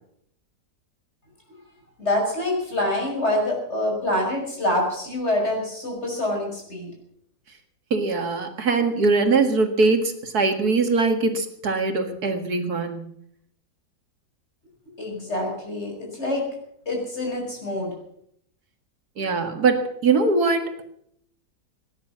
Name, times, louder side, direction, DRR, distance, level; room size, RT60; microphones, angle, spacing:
voice 1, 2.0-6.9 15.0-16.5 16.9-17.9, left 1 dB, 40° left, 0 dB, 6.3 m, -26 dB
voice 2, 7.9-13.1 19.2-20.8, right 4 dB, 70° right, 6 dB, 2.3 m, -22 dB
18.5 x 10.0 x 7.4 m, 0.70 s
omnidirectional pair, 1.7 m